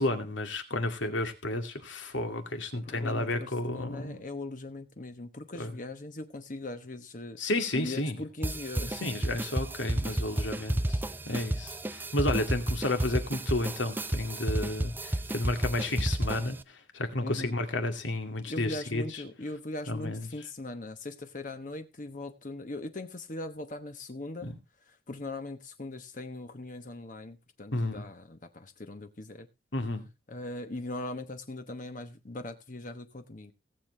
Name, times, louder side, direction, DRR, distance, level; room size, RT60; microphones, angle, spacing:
voice 1, 0.0-4.2 5.5-5.7 7.4-8.2 8.9-16.6 16.9-19.2 19.9-20.3 24.4-24.6 27.7-28.0 29.7-30.1, left 2 dB, 80° left, 2.4 m, -32 dB
voice 2, 2.8-7.4 7.7-9.1 17.2-17.5 18.5-24.5 25.1-29.5 30.3-33.5, left 2 dB, 45° left, 1.1 m, -40 dB
sound 1, 8.4-16.6, right 1 dB, 10° right, 0.5 m, -32 dB
18.5 x 7.5 x 3.2 m
head